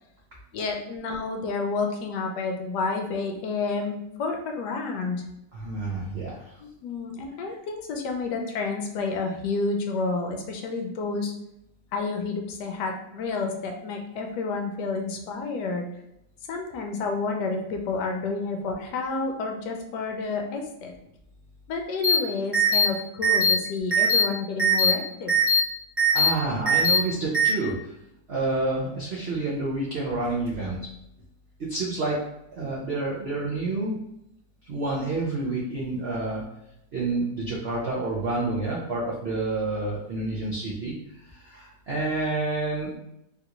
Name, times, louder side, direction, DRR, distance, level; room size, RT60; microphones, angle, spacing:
voice 1, 0.5-5.2 6.6-11.3 11.9-15.8 16.5-20.9 21.7-25.3, left 4 dB, 75° left, 3 dB, 1.1 m, -30 dB
voice 2, 5.5-6.5 26.1-27.9 28.3-30.8 31.7-32.2 32.6-34.0 34.7-36.4 36.9-40.9 41.3-43.0, right 2 dB, 85° right, -5 dB, 0.5 m, -29 dB
sound 1, 22.0-22.2 22.5-22.9 23.2-23.5 23.9-24.2 24.6-24.9 25.3-25.6 26.0-26.3 26.7-27.0 27.3-27.5, equal, 40° right, 0.7 m, -20 dB
3.4 x 2.5 x 2.9 m, 0.82 s
omnidirectional pair, 1.9 m